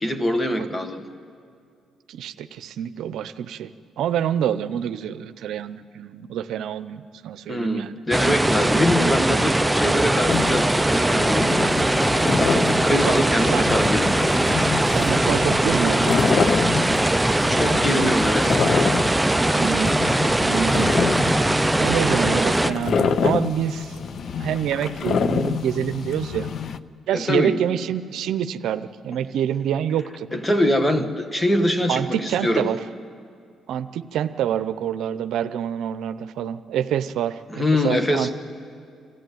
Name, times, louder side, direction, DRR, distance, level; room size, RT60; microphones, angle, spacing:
voice 1, 0.0-1.0 7.5-11.8 12.4-14.2 17.5-18.6 27.1-27.6 30.3-32.7 37.5-38.3, left 1 dB, 20° left, 7 dB, 1.7 m, -23 dB
voice 2, 2.1-3.7 4.0-8.0 8.6-8.8 13.5-13.6 14.9-16.2 19.6-20.0 20.3-23.9 24.4-26.5 27.1-30.3 31.9-32.8 33.7-38.3, right 9 dB, 80° right, 11 dB, 0.7 m, -27 dB
sound 1, 8.1-22.7, right 1 dB, 10° right, 0.5 m, -20 dB
sound 2, 10.3-26.8, left 6 dB, 55° left, 0.7 m, -27 dB
26.5 x 14.0 x 9.2 m, 2.3 s
cardioid pair, 90°, 0 cm